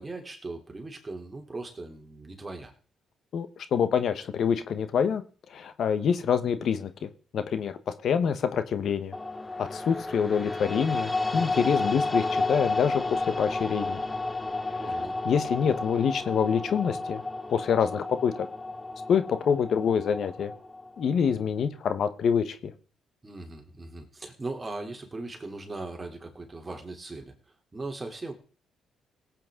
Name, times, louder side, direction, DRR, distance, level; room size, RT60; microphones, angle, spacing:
voice 1, 0.0-2.7 14.8-15.2 23.2-27.3 27.7-28.3, right 2 dB, 25° right, 3 dB, 3.2 m, -39 dB
voice 2, 3.3-5.2 5.5-9.1 9.6-14.0 14.7-14.8 15.2-17.2 17.5-18.5 19.1-20.5 21.0-22.7, left 7 dB, 60° left, 11 dB, 1.1 m, -26 dB
sound 1, 9.1-21.3, left 2 dB, 15° left, 1.3 m, -32 dB
18.0 x 8.9 x 3.7 m, 0.40 s
cardioid pair, 90°, 0 cm